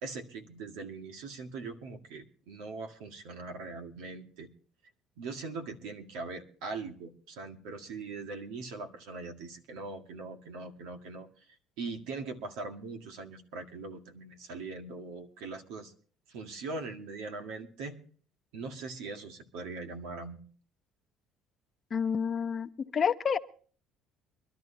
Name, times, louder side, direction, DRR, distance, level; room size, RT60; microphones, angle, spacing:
voice 1, 0.0-4.5 5.2-11.3 11.8-15.9 16.3-18.0 18.5-20.4, right 3 dB, 90° right, 4 dB, 1.9 m, -41 dB
voice 2, 21.9-23.4, left 7 dB, 40° left, 11 dB, 0.8 m, -29 dB
24.0 x 12.0 x 2.8 m, 0.43 s
cardioid pair, 110°, 0 cm